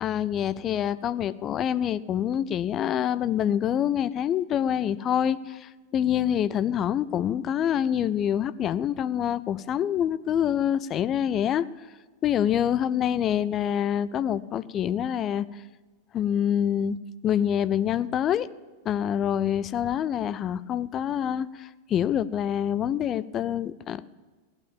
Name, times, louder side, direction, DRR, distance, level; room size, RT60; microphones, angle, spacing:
voice 1, 0.0-11.7 12.2-15.5 16.1-17.0 17.2-18.5 18.8-24.1, left 9 dB, 30° left, 16 dB, 0.5 m, -26 dB
17.0 x 8.9 x 7.3 m, 1.3 s
figure-of-eight pair, 90°, 0 cm